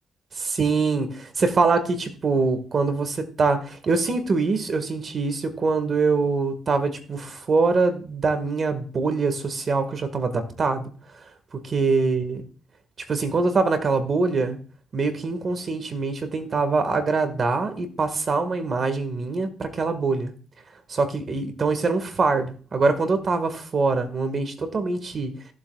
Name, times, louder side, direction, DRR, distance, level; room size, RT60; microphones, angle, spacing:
voice 1, 0.3-10.9 11.5-12.4 13.1-14.6 14.9-20.3 20.9-25.3, right 4 dB, 45° right, 1.7 m, -24 dB
14.5 x 7.8 x 2.4 m
cardioid pair, 90°, 0 cm